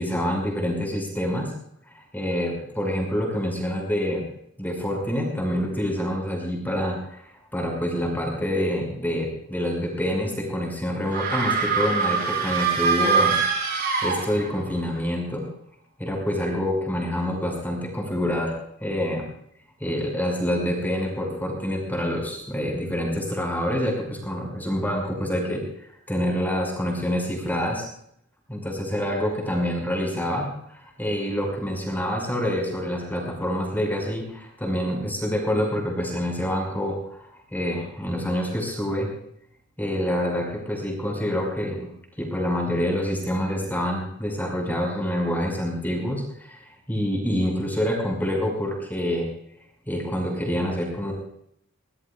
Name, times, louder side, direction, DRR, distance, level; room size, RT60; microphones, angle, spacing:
voice 1, 0.0-1.5 2.1-4.3 4.6-7.2 7.5-13.4 13.8-15.4 16.0-18.5 18.8-19.3 19.8-25.6 26.1-27.9 28.5-37.2 37.5-39.1 39.8-41.9 42.2-46.2 46.5-46.6 46.9-49.3 49.9-51.1, equal, 10° left, 0 dB, 5.9 m, -26 dB
sound 1, 11.0-14.7, right 5 dB, 45° right, 5.4 m, -24 dB
23.5 x 20.5 x 2.5 m, 0.70 s
head